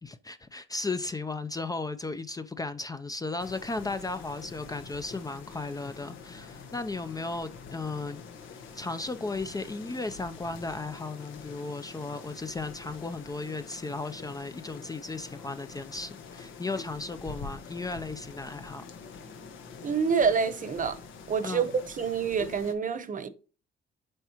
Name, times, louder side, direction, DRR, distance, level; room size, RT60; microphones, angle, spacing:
voice 1, 0.0-8.2 8.8-18.8 21.4-21.7, left 3 dB, 20° left, 0.5 m, -35 dB
sound 1, 3.4-22.7, left 5 dB, 85° left, 1.2 m, -46 dB
voice 2, 19.8-21.0 21.3-23.3, right 6 dB, 40° right, 0.9 m, -27 dB
7.7 x 4.6 x 2.9 m
cardioid pair, 90°, 20 cm